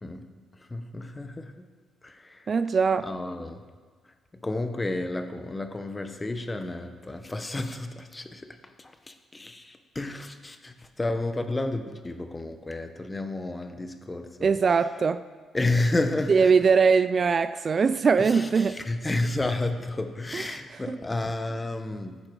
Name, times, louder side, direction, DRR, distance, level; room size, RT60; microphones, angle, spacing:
voice 1, 0.0-1.7 2.0-2.5 3.0-3.6 4.0-4.1 4.4-14.6 15.5-16.5 18.2-22.2, left 2 dB, 20° left, 1.1 m, -31 dB
voice 2, 2.5-3.1 14.4-15.2 16.3-18.8 20.3-20.6 20.9-21.0, right 5 dB, 40° right, 0.4 m, -21 dB
15.0 x 9.8 x 4.8 m
cardioid pair, 90°, 0 cm